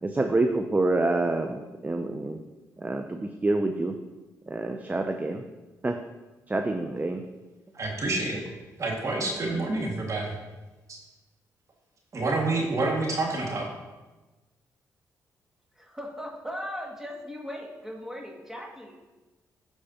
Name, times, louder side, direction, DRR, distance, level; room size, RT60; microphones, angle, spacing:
voice 1, 0.0-2.4 2.8-3.9 4.5-5.4 5.8-6.0 6.5-7.2, right 2 dB, 25° right, 5 dB, 0.6 m, -27 dB
voice 2, 7.7-8.4 8.8-10.4 10.9-11.0 12.1-13.7, right 2 dB, 50° right, -1 dB, 2.0 m, -28 dB
voice 3, 15.7-18.9, equal, 5° right, -1 dB, 2.1 m, -38 dB
14.0 x 4.7 x 2.9 m, 1.1 s
supercardioid pair, 55°, 7 cm